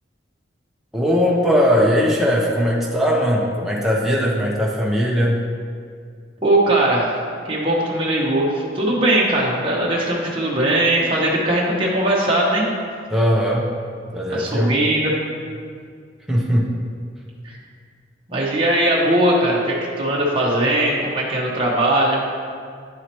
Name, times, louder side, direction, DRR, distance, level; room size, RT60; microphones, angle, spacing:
voice 1, 0.9-5.4 13.1-13.7 14.1-14.8 16.3-16.7, equal, ahead, -4 dB, 0.7 m, -19 dB
voice 2, 6.4-7.2 7.5-12.7 14.3-15.1 17.4-17.5 18.3-22.2, right 1 dB, 25° right, -5 dB, 0.9 m, -19 dB
10.0 x 4.7 x 2.9 m, 2.2 s
head